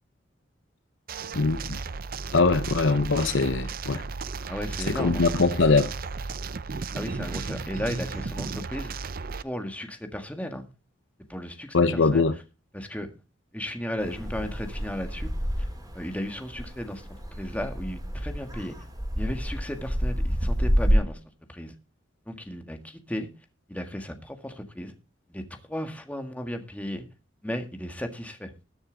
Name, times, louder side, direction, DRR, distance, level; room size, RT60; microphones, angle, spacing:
sound 1, 1.1-9.4, right 4 dB, 45° right, 0.6 m, -34 dB
voice 1, 1.3-1.8 2.3-4.1 4.9-5.9 11.7-12.3, left 3 dB, 65° left, 0.8 m, -22 dB
voice 2, 4.5-5.2 6.9-8.9 9.4-10.7 11.2-12.3 12.7-13.1 13.5-15.3 15.6-15.7 15.9-17.1 17.4-18.8 19.2-21.2 21.5-21.7 22.3-23.3 23.7-24.9 25.3-27.1 27.4-28.5, equal, 5° left, 1.7 m, -35 dB
sound 2, 14.0-21.0, equal, 20° right, 3.6 m, -29 dB
20.5 x 7.0 x 3.9 m
head